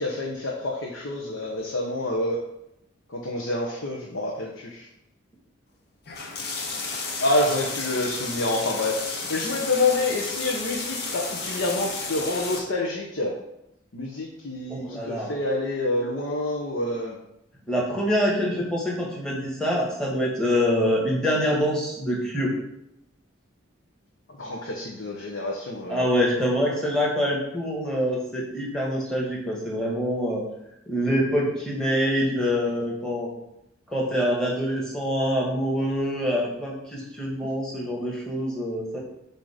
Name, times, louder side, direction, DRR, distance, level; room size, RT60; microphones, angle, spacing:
voice 1, 0.0-2.4 3.1-4.9 7.2-13.3 13.9-17.2 24.4-26.1 37.7-37.8, left 2 dB, 80° left, -2 dB, 0.9 m, -27 dB
sound 1, 6.1-12.6, left 3 dB, 55° left, 0.9 m, -32 dB
voice 2, 14.7-15.3 17.7-22.5 25.9-30.4 30.9-33.3 33.9-39.0, equal, 5° left, -4 dB, 1.5 m, -25 dB
7.5 x 2.8 x 4.9 m, 0.83 s
head